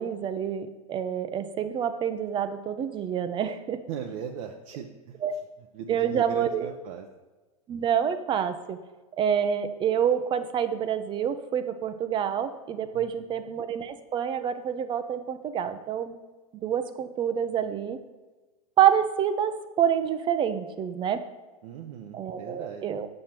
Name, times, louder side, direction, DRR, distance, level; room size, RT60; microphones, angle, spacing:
voice 1, 0.0-3.8 5.2-5.3 5.9-6.7 7.7-8.8 9.2-16.1 16.6-18.0 18.8-21.2 22.1-23.1, right 9 dB, 25° right, 11 dB, 0.6 m, -27 dB
voice 2, 3.9-7.1 12.9-13.4 21.6-22.8, right 8 dB, 60° right, 2 dB, 0.8 m, -39 dB
7.6 x 6.4 x 4.4 m, 1.2 s
supercardioid pair, 135°, 19 cm